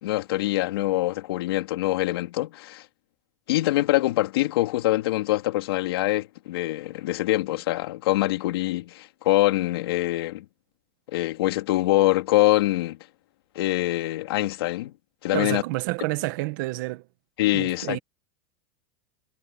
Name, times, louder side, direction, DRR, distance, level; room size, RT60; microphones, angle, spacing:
voice 1, 0.0-2.8 3.5-10.4 11.1-13.0 13.5-14.9 15.2-15.6 17.4-18.0, left 17 dB, 75° left, 2.8 m, -24 dB
voice 2, 15.3-17.0 17.5-18.0, right 20 dB, 55° right, 1.3 m, -29 dB
supercardioid pair, 170°, 13 cm